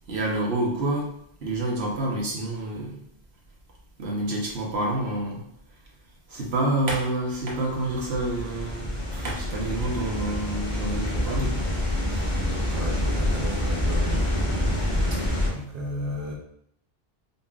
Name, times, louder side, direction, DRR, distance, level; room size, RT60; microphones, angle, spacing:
voice 1, 0.1-1.1 1.4-3.0 4.0-5.4 6.3-11.7 12.1-12.3 14.7-14.8, right 1 dB, 80° right, -2 dB, 1.2 m, -28 dB
sound 1, 7.5-15.5, left 1 dB, 30° left, 1.6 m, -27 dB
voice 2, 12.7-14.3 15.1-15.2 15.5-16.3, equal, 60° right, -3 dB, 0.9 m, -34 dB
5.2 x 2.6 x 2.4 m, 0.70 s
omnidirectional pair, 1.1 m